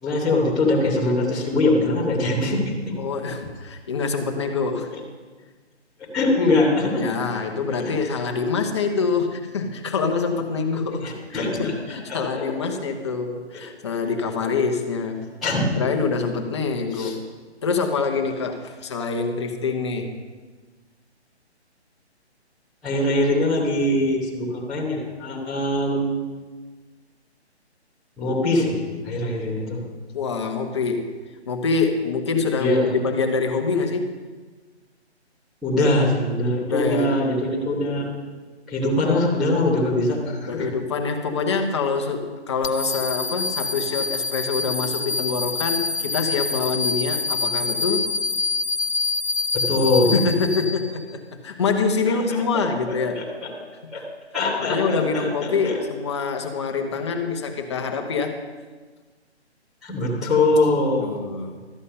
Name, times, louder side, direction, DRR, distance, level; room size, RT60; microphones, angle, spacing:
voice 1, 0.0-2.7 6.1-7.0 7.7-7.9 11.0-12.7 13.5-13.6 15.4-15.6 16.9-17.1 22.8-26.1 28.2-29.8 32.6-32.9 35.6-38.0 38.7-40.7 49.5-50.2 52.5-52.6 53.1-53.5 53.9-54.0 54.3-55.8 59.8-61.2, left 2 dB, ahead, -12 dB, 0.7 m, -22 dB
voice 2, 3.0-4.9 6.9-15.3 15.7-17.2 17.6-20.1 30.1-31.1 31.5-34.1 36.6-37.2 40.5-48.0 50.0-53.2 53.9-54.1 54.6-58.4 61.0-61.6, left 4 dB, 25° left, 4 dB, 1.0 m, -25 dB
sound 1, 42.6-51.1, left 3 dB, 65° left, 1.0 m, -26 dB
13.0 x 8.2 x 5.5 m, 1.4 s
hypercardioid pair, 165°, 34 cm